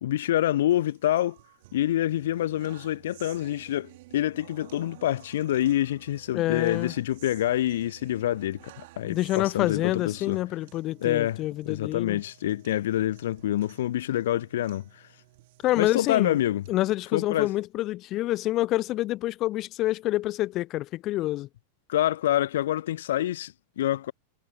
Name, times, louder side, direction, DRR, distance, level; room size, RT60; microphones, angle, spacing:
voice 1, 0.0-1.4 1.7-10.4 11.0-14.8 15.7-16.6 17.1-17.5 21.9-24.1, left 13 dB, 60° left, 0.8 m, -27 dB
sound 1, 0.7-16.7, right 20 dB, 50° right, 3.9 m, -52 dB
voice 2, 6.3-6.9 9.0-12.2 15.6-16.4 16.7-21.5, left 16 dB, 35° left, 0.4 m, -27 dB
figure-of-eight pair, 90°, 0 cm